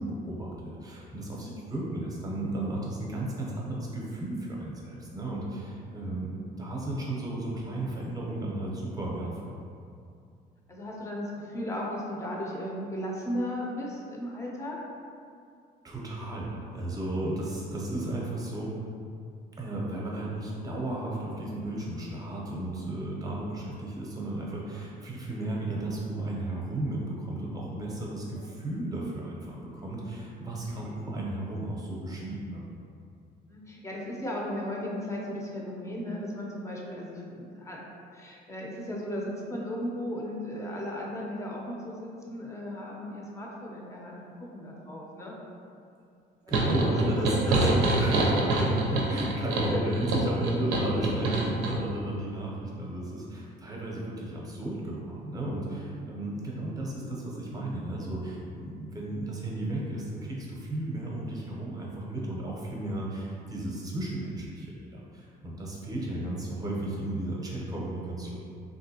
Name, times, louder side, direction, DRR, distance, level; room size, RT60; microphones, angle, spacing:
voice 1, 0.0-9.6 15.8-18.8 19.6-32.6 46.5-47.7 48.0-68.4, right 1 dB, 20° right, -4 dB, 0.7 m, -34 dB
voice 2, 10.7-14.8 23.1-23.4 33.5-37.8 38.1-45.4 46.5-47.4 47.7-48.5 49.7-49.9 56.0-56.2, equal, 15° left, -3 dB, 0.5 m, -36 dB
sound 1, 46.5-51.8, right 2 dB, 90° right, 0.6 m, -26 dB
3.2 x 2.6 x 2.7 m, 2.4 s
cardioid pair, 110°, 17 cm